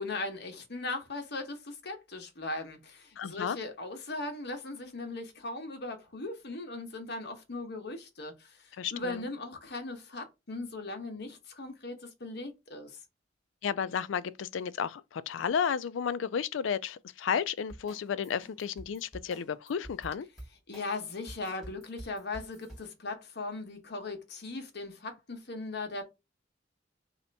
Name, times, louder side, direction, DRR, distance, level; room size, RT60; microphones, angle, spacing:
voice 1, 0.0-13.0 20.7-26.0, left 2 dB, 60° left, 1.2 m, -39 dB
voice 2, 3.2-3.6 8.8-9.2 13.6-20.3, left 7 dB, 80° left, 0.4 m, -32 dB
sound 1, 17.7-22.9, right 1 dB, ahead, 1.8 m, -47 dB
3.2 x 2.9 x 4.0 m
head